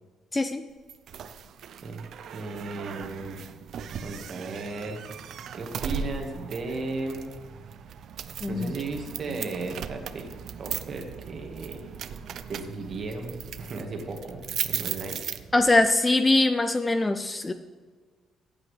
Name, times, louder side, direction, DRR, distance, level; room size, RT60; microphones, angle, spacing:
voice 1, 0.3-0.6 8.4-8.7 15.5-17.5, left 2 dB, 15° left, 10 dB, 0.4 m, -22 dB
sound 1, 0.9-15.8, right 8 dB, 55° right, 0.5 m, -38 dB
voice 2, 1.8-3.4 4.0-5.1 5.5-7.3 8.5-10.3 10.6-11.8 12.5-15.2, right 3 dB, 40° right, 3 dB, 1.8 m, -35 dB
14.5 x 8.5 x 3.3 m, 1.5 s
cardioid pair, 140°, 0 cm